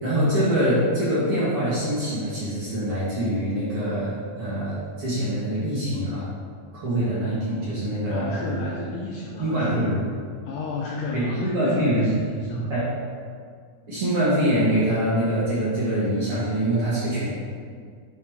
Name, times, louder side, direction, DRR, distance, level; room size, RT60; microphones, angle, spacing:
voice 1, 0.0-6.3 6.7-8.8 9.4-10.0 11.1-12.1 12.5-12.9 13.9-17.3, right 1 dB, 50° right, -9 dB, 1.9 m, -24 dB
voice 2, 8.1-10.0 10.5-12.7, left 3 dB, 85° left, -2 dB, 1.9 m, -32 dB
8.9 x 4.6 x 3.6 m, 2.1 s
omnidirectional pair, 4.4 m